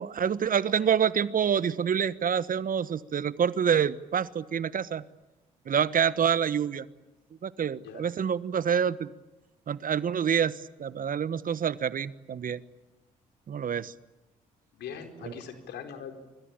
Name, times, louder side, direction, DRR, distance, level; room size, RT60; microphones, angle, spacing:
voice 1, 0.0-5.0 5.7-6.9 7.4-9.1 9.7-12.6 13.5-13.9 15.2-15.3, right 8 dB, 50° right, 17 dB, 1.2 m, -27 dB
voice 2, 7.7-8.1 14.7-16.1, left 7 dB, 70° left, 6 dB, 4.4 m, -41 dB
25.0 x 25.0 x 8.9 m, 1.1 s
hypercardioid pair, 45°, 18 cm